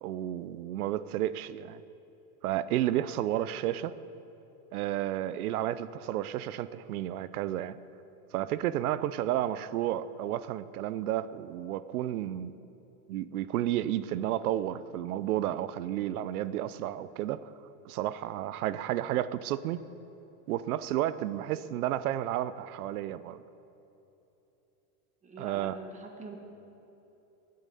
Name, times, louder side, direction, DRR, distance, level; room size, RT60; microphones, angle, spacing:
voice 1, 0.0-1.8 2.4-4.0 4.7-7.8 8.3-12.6 13.1-17.5 17.8-19.8 20.5-23.4 25.4-25.8, right 12 dB, 85° right, 16 dB, 0.7 m, -32 dB
voice 2, 25.2-26.4, right 3 dB, 15° right, 3 dB, 1.3 m, -44 dB
20.0 x 7.7 x 5.5 m, 3.0 s
supercardioid pair, 145°, 44 cm